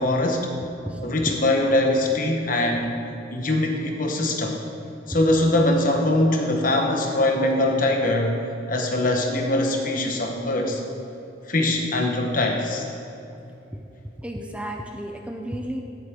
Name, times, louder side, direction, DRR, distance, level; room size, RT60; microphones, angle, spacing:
voice 1, 0.0-0.5 1.0-2.9 3.3-4.6 5.1-8.4 8.7-10.8 11.5-12.9, left 1 dB, 45° left, 2 dB, 1.2 m, -22 dB
voice 2, 0.6-1.4 9.0-9.1 14.2-15.8, equal, 5° right, 3 dB, 0.5 m, -33 dB
17.0 x 7.7 x 3.7 m, 2.8 s
head